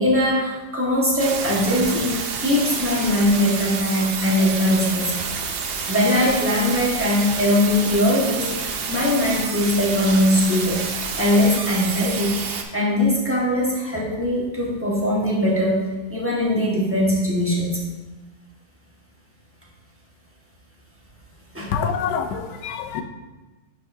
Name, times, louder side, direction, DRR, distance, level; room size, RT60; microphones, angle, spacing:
voice 1, 0.0-5.1 5.6-10.8 11.2-12.4 12.7-15.8 16.1-17.8 21.5-21.8, left 1 dB, 10° right, -5 dB, 1.2 m, -21 dB
sound 1, 1.2-12.6, right 5 dB, 75° right, 0.5 m, -29 dB
voice 2, 21.7-23.0, left 7 dB, 85° left, 8 dB, 1.2 m, -26 dB
10.0 x 4.7 x 2.7 m, 1.2 s
omnidirectional pair, 1.8 m